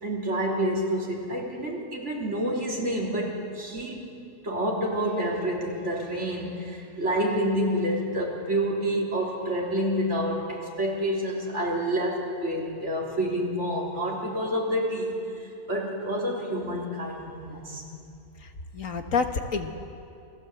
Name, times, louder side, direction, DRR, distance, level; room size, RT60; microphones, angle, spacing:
voice 1, 0.0-4.1 4.4-17.8, equal, 60° right, -3 dB, 3.8 m, -28 dB
voice 2, 18.4-19.7, left 5 dB, 80° left, 5 dB, 1.9 m, -29 dB
28.0 x 17.5 x 7.9 m, 2.6 s
omnidirectional pair, 1.4 m